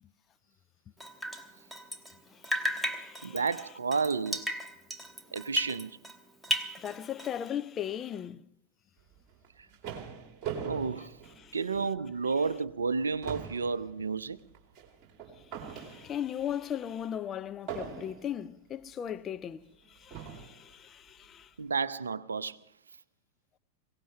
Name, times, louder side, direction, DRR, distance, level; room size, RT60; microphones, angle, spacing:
Drip, 1.0-2.2 2.4-6.2 6.4-7.5, equal, ahead, 1.2 m, -35 dB
voice 1, 2.3-3.4 6.6-8.5 11.4-11.6 15.6-21.5, left 9 dB, 25° left, 0.5 m, -38 dB
voice 2, 3.2-4.4 5.3-6.0 10.6-11.2 11.5-14.4 21.6-22.6, right 5 dB, 75° right, 0.5 m, -31 dB
sound 1, 9.3-12.0 12.4-12.6 12.9-16.4 17.7-18.4 19.3-19.4 20.1-20.6, right 7 dB, 35° right, 2.6 m, -41 dB
23.0 x 17.5 x 3.3 m
figure-of-eight pair, 90°, 0 cm